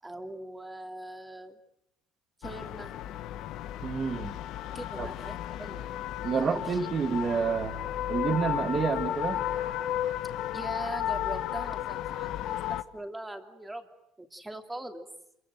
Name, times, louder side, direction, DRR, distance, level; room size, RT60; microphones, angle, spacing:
voice 1, 0.0-1.6 2.4-2.9 4.7-6.0 6.4-6.9 10.5-13.9 14.2-15.0, right 1 dB, 10° right, 5 dB, 2.9 m, -41 dB
sound 1, 2.4-12.8, left 12 dB, 60° left, 1.3 m, -33 dB
voice 2, 3.8-4.4 5.0-5.1 6.2-7.8 8.1-9.5, right 6 dB, 35° right, 8 dB, 2.5 m, -29 dB
28.0 x 23.5 x 7.8 m, 0.79 s
cardioid pair, 120°, 0 cm